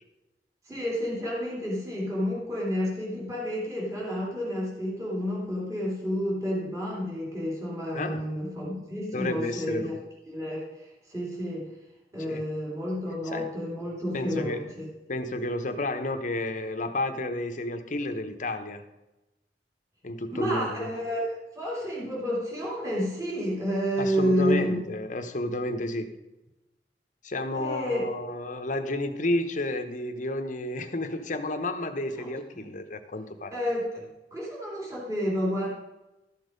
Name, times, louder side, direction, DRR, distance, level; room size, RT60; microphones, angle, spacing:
voice 1, 0.7-9.9 10.3-11.7 12.1-14.9 20.3-24.9 27.5-28.0 32.2-32.3 33.5-35.7, equal, 20° right, -5 dB, 2.8 m, -30 dB
voice 2, 7.9-8.2 9.1-10.0 12.3-12.4 13.3-13.5 14.1-14.6 15.1-18.8 20.0-20.9 24.0-26.1 27.2-33.5, left 1 dB, 45° left, 7 dB, 1.0 m, -31 dB
13.0 x 6.4 x 5.2 m, 1.0 s
head